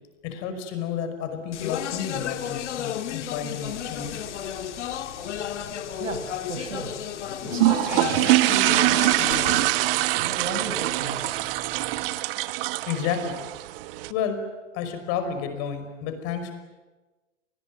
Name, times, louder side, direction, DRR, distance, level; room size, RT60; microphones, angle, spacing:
voice 1, 0.2-4.2 12.9-13.4 14.1-14.4 14.7-16.5, left 7 dB, 40° left, 9 dB, 5.5 m, -31 dB
Speech, 1.5-9.7, left 10 dB, 65° left, 1.8 m, -33 dB
sound 1, 3.6-12.1, right 4 dB, 20° right, 6.6 m, -48 dB
voice 2, 6.0-6.9 7.4-9.7 10.2-11.6, right 3 dB, 85° right, 7 dB, 6.2 m, -35 dB
sound 2, 7.5-14.1, right 18 dB, 45° right, 1.2 m, -23 dB
28.5 x 21.0 x 9.7 m, 1.2 s
hypercardioid pair, 120°, 38 cm